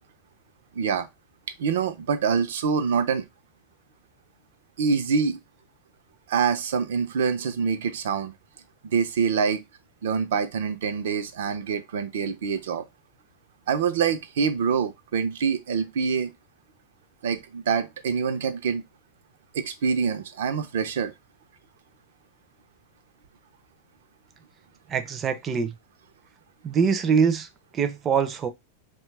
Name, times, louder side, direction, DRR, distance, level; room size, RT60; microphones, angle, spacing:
voice 1, 0.7-1.1 1.6-3.2 4.8-5.4 6.3-8.3 8.8-9.6 10.0-12.8 13.7-16.3 17.2-18.8 19.5-21.1, right 6 dB, 80° right, 0.5 m, -25 dB
voice 2, 24.9-25.7 26.6-27.5 27.7-28.5, right 6 dB, 25° right, 0.4 m, -23 dB
2.8 x 2.2 x 3.2 m
supercardioid pair, 145°, 0 cm